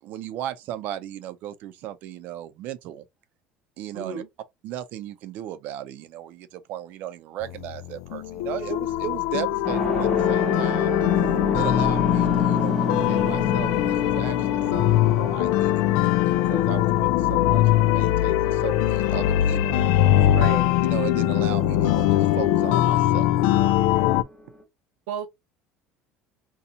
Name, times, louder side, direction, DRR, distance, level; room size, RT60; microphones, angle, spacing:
voice 1, 0.0-3.1 3.8-4.2 4.6-10.9 11.6-19.8 20.9-23.3, right 12 dB, 60° right, 0.6 m, -36 dB
voice 2, 3.9-4.3 20.3-20.7 25.1-25.3, right 6 dB, 85° right, 1.0 m, -31 dB
sound 1, 7.4-24.2, left 13 dB, 80° left, 0.3 m, -22 dB
sound 2, 9.6-24.6, left 3 dB, 10° left, 0.9 m, -31 dB
2.8 x 2.3 x 3.8 m
cardioid pair, 135°, 3 cm